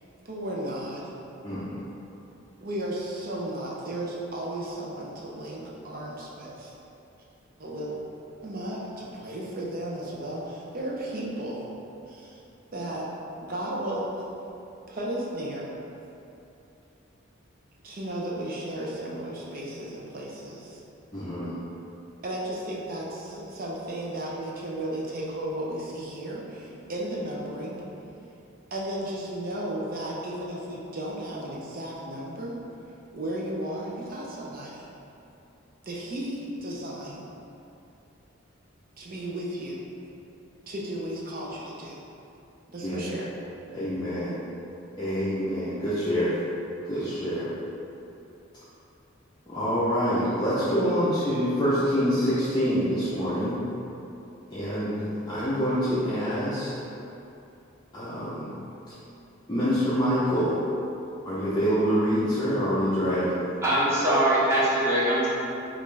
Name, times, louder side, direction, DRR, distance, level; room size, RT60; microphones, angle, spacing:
voice 1, 0.2-1.1 2.6-6.7 7.6-8.0 8.4-11.7 12.1-12.4 12.7-13.1 13.4-14.1 14.9-15.7 17.8-20.8 22.2-27.8 28.7-32.6 33.1-34.9 35.8-37.2 39.0-39.8 40.7-42.0 42.7-43.3, right 1 dB, 45° right, -4 dB, 0.6 m, -34 dB
voice 2, 1.4-1.8 21.1-21.6 42.8-43.1 43.7-44.4 45.0-46.4 46.9-47.5 49.5-53.6 54.5-56.7 57.9-58.5 59.5-60.6 61.2-63.4, equal, 20° left, -12 dB, 0.6 m, -26 dB
voice 3, 63.6-65.3, right 1 dB, 15° right, -9 dB, 1.0 m, -22 dB
5.4 x 2.5 x 3.2 m, 2.8 s
head